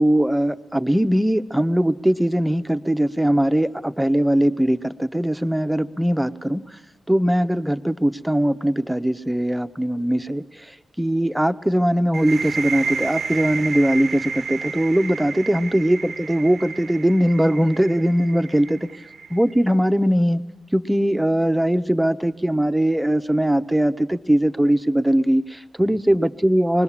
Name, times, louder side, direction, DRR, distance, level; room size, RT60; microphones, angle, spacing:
voice 1, 0.0-6.7 7.1-18.9 19.3-20.4 20.7-26.8, right 1 dB, 5° right, 10 dB, 0.8 m, -20 dB
sound 1, 12.1-19.7, right 5 dB, 65° right, 0.7 m, -31 dB
25.0 x 20.5 x 7.3 m, 1.1 s
cardioid pair, 90°, 0 cm